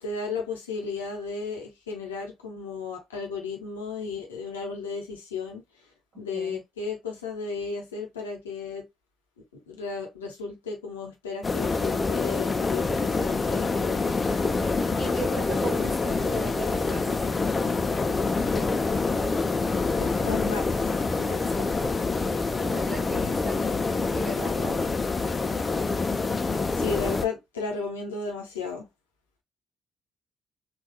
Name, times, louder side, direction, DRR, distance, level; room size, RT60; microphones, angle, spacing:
voice 1, 0.0-5.6 6.2-8.8 9.5-14.2 20.0-20.9 26.7-28.9, left 4 dB, 85° left, 0.7 m, -34 dB
sound 1, 11.4-27.3, left 3 dB, 35° left, 0.5 m, -26 dB
voice 2, 14.9-17.3 18.4-18.9 21.1-22.0 22.4-23.7 24.1-25.0, right 2 dB, 60° right, 1.4 m, -37 dB
3.5 x 2.3 x 2.2 m
figure-of-eight pair, 40°, 0 cm